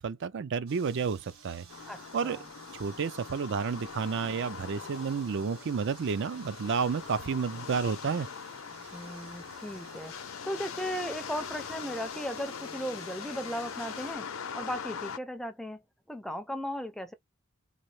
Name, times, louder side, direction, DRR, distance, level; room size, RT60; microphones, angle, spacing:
voice 1, 0.0-1.6 2.1-2.4 2.7-8.3, right 5 dB, 60° right, 0.4 m, -31 dB
sound 1, 0.7-14.2, right 5 dB, 85° right, 1.4 m, -53 dB
sound 2, 1.7-15.2, left 6 dB, 70° left, 0.6 m, -42 dB
voice 2, 1.9-2.5 8.9-14.3 14.5-15.8 16.1-17.1, equal, ahead, 0.5 m, -37 dB
4.0 x 2.7 x 3.2 m
head